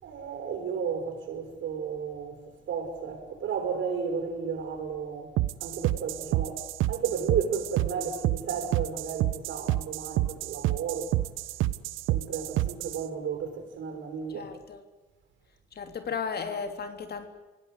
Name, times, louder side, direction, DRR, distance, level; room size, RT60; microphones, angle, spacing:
voice 1, 0.0-5.3 5.6-11.2 12.1-14.5, right 6 dB, 75° right, 6.4 m, -33 dB
sound 1, 5.4-13.0, right 15 dB, 90° right, 0.9 m, -29 dB
voice 2, 14.3-14.8 15.7-17.3, left 5 dB, 55° left, 3.3 m, -35 dB
27.5 x 17.0 x 8.3 m
cardioid pair, 90°, 20 cm